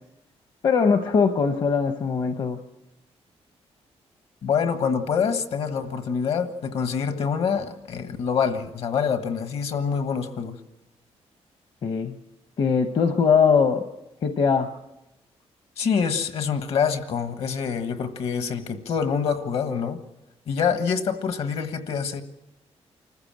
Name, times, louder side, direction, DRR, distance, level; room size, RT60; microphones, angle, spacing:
voice 1, 0.6-2.6 11.8-12.1 12.6-13.8 14.2-14.7, left 5 dB, 45° left, 7 dB, 0.9 m, -21 dB
voice 2, 4.4-10.6 15.8-20.0 20.5-22.2, left 6 dB, 65° left, 9 dB, 1.4 m, -26 dB
25.0 x 14.5 x 7.4 m, 0.94 s
wide cardioid pair, 165°, 11 cm